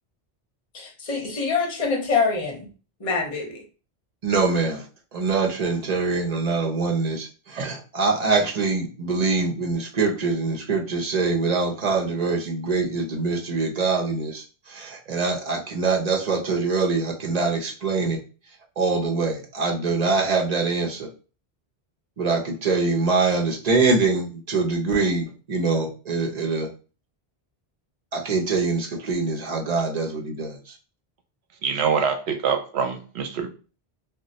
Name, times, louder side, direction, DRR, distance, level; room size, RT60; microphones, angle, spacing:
voice 1, 0.7-2.7 3.0-3.6, left 4 dB, 40° left, 1 dB, 0.8 m, -25 dB
voice 2, 4.2-4.8 5.1-18.2 18.8-21.1 22.2-26.7 28.1-30.6, right 4 dB, 45° right, 0 dB, 0.7 m, -24 dB
voice 3, 31.6-33.5, right 6 dB, 80° right, 6 dB, 0.9 m, -24 dB
2.2 x 2.2 x 3.9 m, 0.35 s
omnidirectional pair, 1.1 m